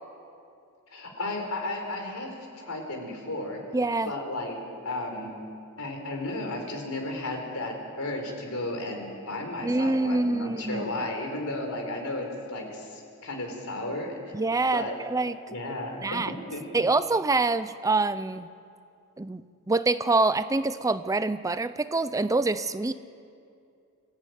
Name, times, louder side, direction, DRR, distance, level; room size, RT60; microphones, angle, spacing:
voice 1, 0.9-2.3 2.6-3.6 4.0-4.6 4.8-5.3 5.8-14.1 14.7-14.9 15.5-16.2 16.5-16.8, left 2 dB, 70° left, 2 dB, 4.3 m, -34 dB
voice 2, 3.7-4.1 9.6-10.9 14.3-15.4 16.0-16.3 16.7-18.5 19.2-19.4 19.7-22.9, right 3 dB, 15° right, 13 dB, 0.4 m, -25 dB
25.5 x 14.5 x 9.4 m, 2.5 s
head